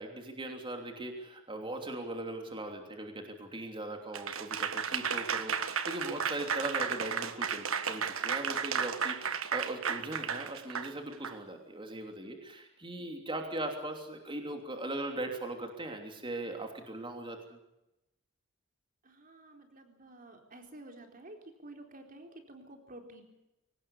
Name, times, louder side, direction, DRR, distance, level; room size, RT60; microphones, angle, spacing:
voice 1, 0.0-17.6, right 1 dB, 25° right, 3 dB, 3.1 m, -39 dB
Applause / Crowd, 4.1-11.4, right 6 dB, 75° right, 1.5 m, -33 dB
voice 2, 19.0-23.2, right 1 dB, 40° right, 4 dB, 4.2 m, -51 dB
23.0 x 19.0 x 8.4 m, 0.91 s
head